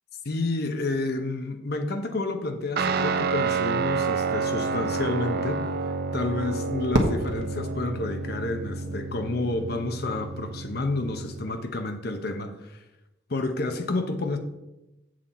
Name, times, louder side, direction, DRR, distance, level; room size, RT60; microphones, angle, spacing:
voice 1, 0.2-5.6 6.1-12.8 13.3-14.4, left 2 dB, 55° left, 7 dB, 0.8 m, -30 dB
Guitar, 2.8-11.6, right 4 dB, 55° right, 0.5 m, -29 dB
Fireworks, 6.9-9.1, right 1 dB, 70° right, 1.2 m, -30 dB
7.6 x 7.4 x 4.2 m, 0.99 s
head